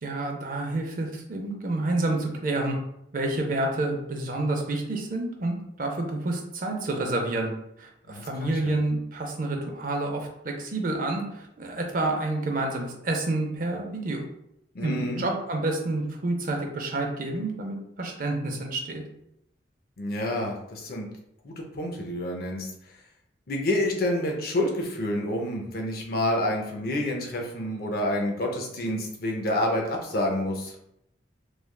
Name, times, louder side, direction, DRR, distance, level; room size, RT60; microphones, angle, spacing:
voice 1, 0.0-2.8 3.1-7.5 7.8-14.2 14.8-19.0, right 2 dB, 45° right, 2 dB, 0.5 m, -29 dB
voice 2, 8.1-8.8 14.7-15.2 20.0-21.1 21.4-22.7 23.5-30.7, left 1 dB, 55° left, 1 dB, 0.5 m, -28 dB
3.2 x 2.2 x 2.2 m, 0.79 s
head